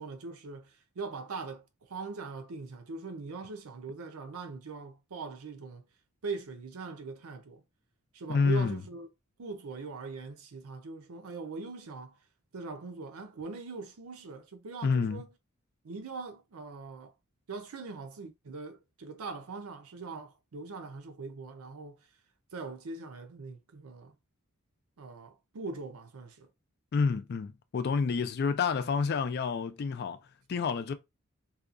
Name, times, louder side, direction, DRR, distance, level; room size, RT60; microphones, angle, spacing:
voice 1, 0.0-5.8 6.2-7.6 8.1-9.1 9.4-12.2 12.5-15.3 15.8-17.1 17.5-22.1 22.5-24.1 25.0-26.5, right 4 dB, 80° right, 0.5 m, -41 dB
voice 2, 8.3-8.8 14.8-15.2 26.9-30.2 30.5-30.9, left 5 dB, 45° left, 0.3 m, -29 dB
2.7 x 2.3 x 2.4 m
head